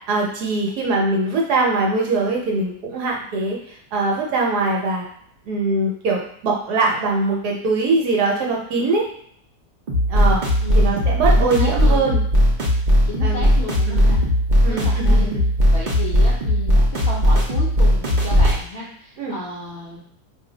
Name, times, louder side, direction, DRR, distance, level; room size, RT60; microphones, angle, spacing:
voice 1, 0.1-3.6 3.9-5.0 5.5-9.0 10.1-10.4 10.8-12.2 13.2-13.5 13.9-14.0 14.6-15.4 19.2-19.4, right 3 dB, 70° right, -2 dB, 1.3 m, -22 dB
sound 1, 9.9-18.6, equal, 55° right, 0.5 m, -17 dB
voice 2, 10.6-12.1 13.0-14.3 14.7-15.3 15.7-20.0, left 2 dB, 60° left, -6 dB, 0.6 m, -33 dB
2.7 x 2.4 x 3.8 m, 0.66 s
omnidirectional pair, 1.8 m